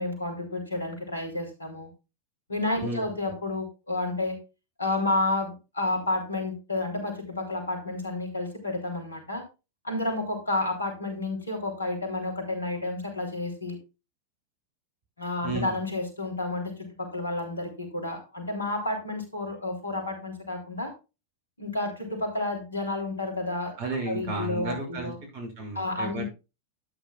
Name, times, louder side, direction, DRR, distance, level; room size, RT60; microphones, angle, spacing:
voice 1, 0.0-1.9 2.5-4.4 4.8-9.4 9.8-13.8 15.2-16.7 17.0-20.9 21.6-23.7 24.1-25.2 25.7-26.2, left 2 dB, 75° left, 3 dB, 3.5 m, -30 dB
voice 2, 15.4-15.8 23.8-26.2, right 3 dB, 50° right, 3 dB, 6.3 m, -33 dB
12.5 x 9.3 x 2.4 m, 0.29 s
figure-of-eight pair, 90°, 0 cm